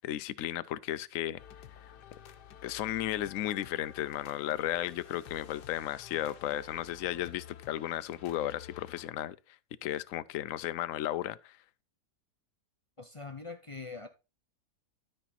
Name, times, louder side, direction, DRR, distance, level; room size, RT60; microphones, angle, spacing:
voice 1, 0.0-1.4 2.6-9.4 9.8-11.6, left 13 dB, 65° left, 0.9 m, -34 dB
sound 1, 1.4-9.1, left 9 dB, 85° left, 1.4 m, -51 dB
voice 2, 13.0-14.1, left 4 dB, 30° left, 0.6 m, -43 dB
12.5 x 5.1 x 4.2 m
omnidirectional pair, 1.7 m